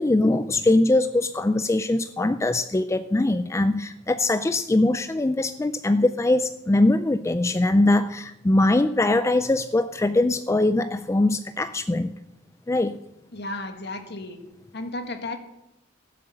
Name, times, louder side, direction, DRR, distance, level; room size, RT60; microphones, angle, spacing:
voice 1, 0.0-12.1 12.7-13.0, left 2 dB, 15° left, 11 dB, 0.4 m, -22 dB
voice 2, 13.3-14.4 14.7-15.4, left 2 dB, 60° left, 6 dB, 1.7 m, -33 dB
16.5 x 7.7 x 7.8 m, 0.93 s
head